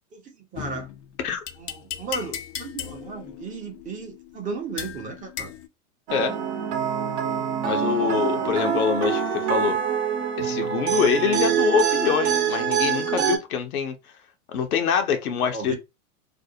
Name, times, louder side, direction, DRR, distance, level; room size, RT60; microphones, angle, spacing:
voice 1, 0.1-0.9 1.6-5.5 15.5-15.8, right 4 dB, 20° right, 0.6 m, -35 dB
sound 1, 0.6-5.7, left 10 dB, 35° left, 0.4 m, -37 dB
sound 2, 6.1-13.4, right 8 dB, 55° right, 0.9 m, -25 dB
voice 2, 7.6-9.8 10.4-13.9 14.5-15.8, left 7 dB, 80° left, 0.8 m, -24 dB
2.6 x 2.0 x 2.7 m
hypercardioid pair, 110°, 43 cm